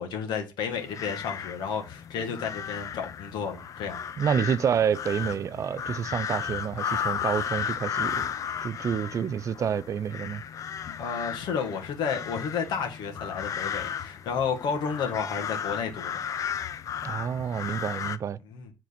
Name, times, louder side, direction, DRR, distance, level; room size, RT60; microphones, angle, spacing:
voice 1, 0.0-4.0 11.0-16.2 18.5-18.7, left 6 dB, 70° left, 1.7 m, -31 dB
sound 1, 0.7-18.2, left 8 dB, 45° left, 0.5 m, -34 dB
voice 2, 4.2-8.3 8.6-10.4 17.0-18.4, right 8 dB, 40° right, 0.5 m, -28 dB
7.5 x 3.8 x 5.2 m
cardioid pair, 110°, 8 cm